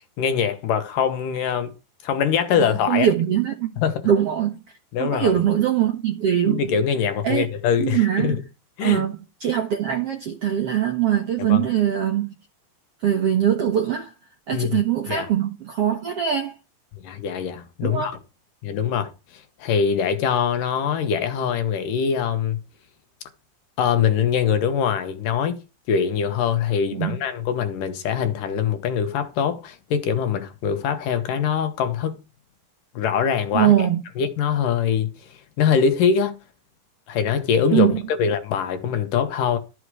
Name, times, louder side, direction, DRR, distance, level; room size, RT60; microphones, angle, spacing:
voice 1, 0.2-1.7 2.0-3.1 3.8-4.1 4.9-5.3 6.5-8.4 8.8-9.0 11.5-11.6 14.5-14.8 15.1-15.3 17.0-18.1 18.6-22.6 23.8-25.5 25.9-32.2 33.0-33.7 34.2-36.4 37.1-39.6, left 7 dB, 70° left, 2.6 m, -23 dB
voice 2, 2.6-3.7 4.0-4.6 5.0-6.7 7.2-7.4 7.8-8.4 8.8-12.3 13.0-14.1 14.5-16.5 17.8-18.1 26.9-27.2 33.5-34.0 37.7-38.0, right 10 dB, 65° right, 1.5 m, -22 dB
13.0 x 6.1 x 4.8 m
omnidirectional pair, 4.4 m